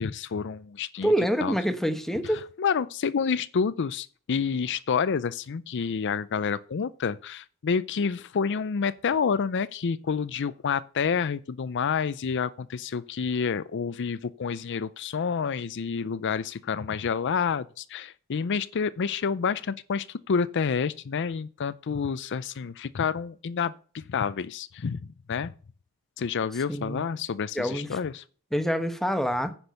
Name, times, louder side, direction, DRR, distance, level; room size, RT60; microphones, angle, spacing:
voice 1, 0.0-1.1 1.4-1.5 2.2-25.5 26.2-28.2, left 6 dB, 55° left, 0.5 m, -29 dB
voice 2, 1.0-2.4 26.7-27.0 27.5-27.9 28.5-29.5, equal, ahead, 1.0 m, -26 dB
9.8 x 6.1 x 6.8 m
head